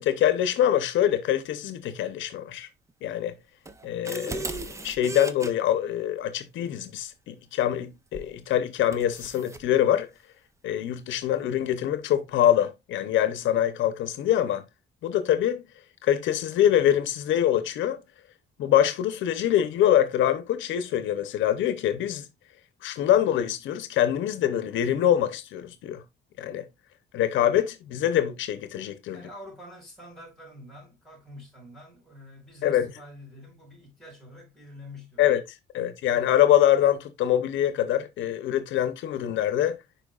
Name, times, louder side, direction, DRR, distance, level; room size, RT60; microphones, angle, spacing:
voice 1, 0.0-2.7 3.0-3.4 3.8-10.1 10.6-14.6 15.0-15.6 16.0-18.0 18.6-22.3 22.8-26.0 26.4-26.6 27.1-29.2 32.6-32.9 35.2-35.4 35.7-39.8, left 11 dB, 90° left, 0.7 m, -24 dB
sound 1, 3.7-5.5 8.1-8.4 8.9-9.7, right 3 dB, 15° right, 0.5 m, -36 dB
voice 2, 29.1-35.2, left 1 dB, ahead, 4.7 m, -46 dB
10.0 x 4.4 x 2.3 m
cardioid pair, 150°, 19 cm